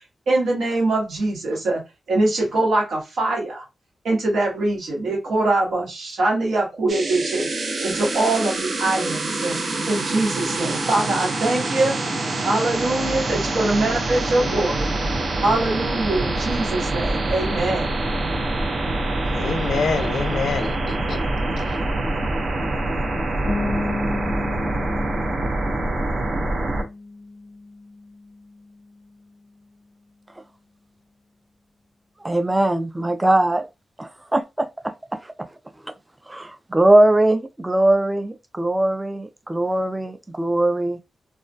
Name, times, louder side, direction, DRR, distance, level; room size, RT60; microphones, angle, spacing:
voice 1, 0.3-1.8 2.1-3.6 4.0-9.6 9.9-14.9 15.4-18.0, right 2 dB, 90° right, 1.1 m, -23 dB
sound 1, 6.9-26.8, right 2 dB, 65° right, 0.6 m, -25 dB
voice 2, 19.3-21.2 21.6-21.7, left 5 dB, 85° left, 0.5 m, -26 dB
sound 2, 23.5-29.1, left 2 dB, 35° left, 0.5 m, -33 dB
voice 3, 32.2-33.7 34.0-34.9 36.3-41.0, right 1 dB, 20° right, 0.4 m, -20 dB
2.3 x 2.1 x 2.6 m
cardioid pair, 50°, 0 cm